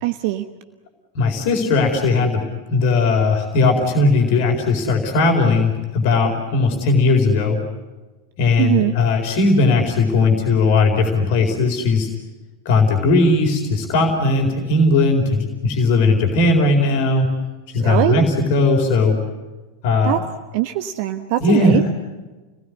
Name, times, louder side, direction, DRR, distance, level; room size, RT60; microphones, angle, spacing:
voice 1, 0.0-0.4 8.6-8.9 17.8-18.3 20.0-20.2 20.5-21.9, right 14 dB, 45° right, 9 dB, 1.1 m, -21 dB
voice 2, 1.1-2.4 2.7-7.6 8.4-12.1 12.6-17.3 17.7-19.2 19.8-20.2 21.4-21.8, left 3 dB, 45° left, 2 dB, 4.4 m, -17 dB
30.0 x 19.5 x 9.8 m, 1.3 s
figure-of-eight pair, 90°, 0 cm